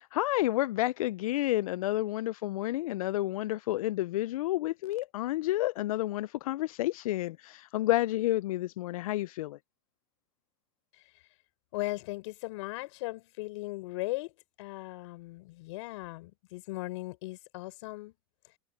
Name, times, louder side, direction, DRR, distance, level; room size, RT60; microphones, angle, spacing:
voice 1, 0.0-9.6, left 16 dB, 85° left, 0.4 m, -30 dB
voice 2, 11.7-18.1, left 21 dB, 60° left, 4.9 m, -38 dB
supercardioid pair, 155°, 18 cm